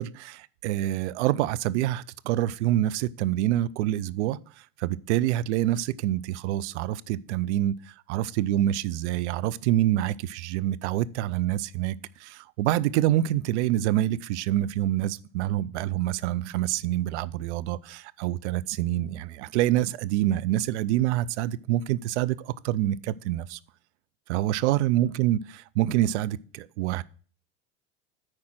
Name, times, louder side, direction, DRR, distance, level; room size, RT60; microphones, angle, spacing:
voice 1, 0.0-23.6 24.3-27.0, right 13 dB, 85° right, 0.5 m, -26 dB
8.8 x 4.8 x 6.1 m
supercardioid pair, 110°, 34 cm